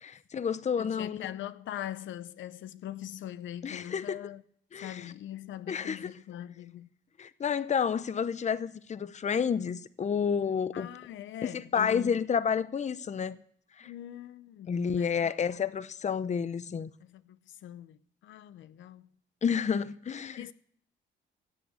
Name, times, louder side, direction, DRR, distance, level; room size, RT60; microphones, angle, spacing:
voice 1, 0.0-1.3 3.6-4.2 4.7-5.1 5.7-6.1 7.2-10.9 11.4-13.4 13.8-13.9 14.7-16.9 19.4-20.5, left 7 dB, 35° left, 0.8 m, -30 dB
voice 2, 0.8-4.4 4.8-6.9 10.7-12.2 13.8-15.3 17.0-19.1 20.4-20.5, left 12 dB, 75° left, 0.7 m, -42 dB
16.5 x 7.9 x 8.0 m
cardioid pair, 90°, 20 cm